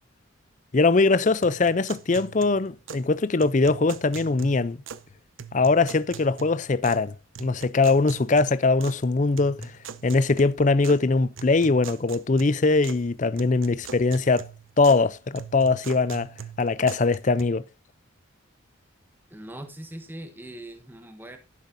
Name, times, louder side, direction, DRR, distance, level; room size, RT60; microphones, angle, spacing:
voice 1, 0.7-4.8 5.5-9.7 10.0-14.5 14.8-16.3 16.6-17.7, left 3 dB, 35° left, 0.5 m, -22 dB
sound 1, 1.4-3.1 3.4-5.1 5.4-7.1 7.4-9.0 9.4-11.0 11.4-13.1 13.4-15.1 15.4-17.4, right 7 dB, 70° right, 0.7 m, -42 dB
voice 2, 19.3-21.4, right 1 dB, 10° right, 1.3 m, -41 dB
12.0 x 10.5 x 2.6 m
head